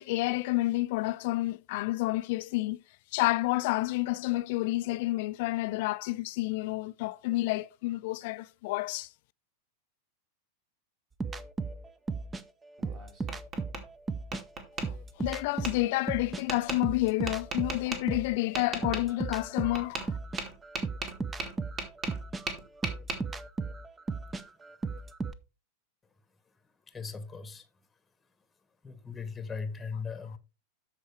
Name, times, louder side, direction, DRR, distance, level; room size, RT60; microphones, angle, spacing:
voice 1, 0.0-2.8 3.1-9.1 15.2-20.1, left 19 dB, 50° left, 0.3 m, -29 dB
sound 1, 11.2-14.4 14.8-18.4 18.8-25.3, right 4 dB, 15° right, 0.6 m, -36 dB
Tap, 12.8-13.8 14.3-14.9 15.6-15.7 16.5-16.8 17.3-18.0 18.5-19.0 19.7-20.1 20.4-22.2 22.5-23.2, right 3 dB, 35° right, 2.1 m, -36 dB
voice 2, 26.9-27.6 28.8-30.4, left 5 dB, 15° left, 1.1 m, -38 dB
13.0 x 4.5 x 3.3 m
figure-of-eight pair, 90°, 0 cm